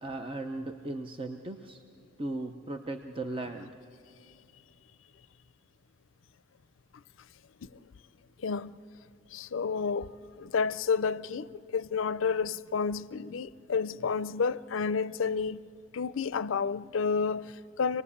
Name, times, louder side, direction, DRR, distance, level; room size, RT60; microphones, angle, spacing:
voice 1, 0.0-1.8 2.2-3.7, right 2 dB, 25° right, 0.7 m, -37 dB
voice 2, 8.4-8.8 9.3-15.6 15.9-18.0, left 5 dB, 80° left, 0.5 m, -30 dB
26.5 x 19.0 x 8.5 m
head